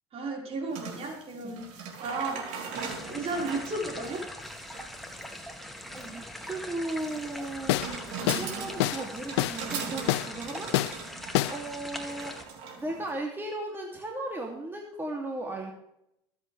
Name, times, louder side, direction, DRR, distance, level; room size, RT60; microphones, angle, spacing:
voice 1, 0.1-2.7 3.0-4.3, right 2 dB, 45° right, 0 dB, 4.9 m, -34 dB
sound 1, 0.7-13.1, right 5 dB, 65° right, 3.6 m, -40 dB
voice 2, 1.3-1.6 5.9-7.8 8.2-11.1 11.5-12.3 12.8-15.7, right 2 dB, 15° right, 0 dB, 2.8 m, -36 dB
sound 2, 2.7-12.4, left 1 dB, ahead, 2.3 m, -42 dB
sound 3, 7.7-8.0 8.3-8.5 8.8-9.0 9.4-9.6 10.1-10.3 10.7-10.9 11.3-11.6, left 17 dB, 80° left, 0.5 m, -26 dB
23.5 x 8.3 x 3.4 m, 0.77 s
hypercardioid pair, 75°, 14 cm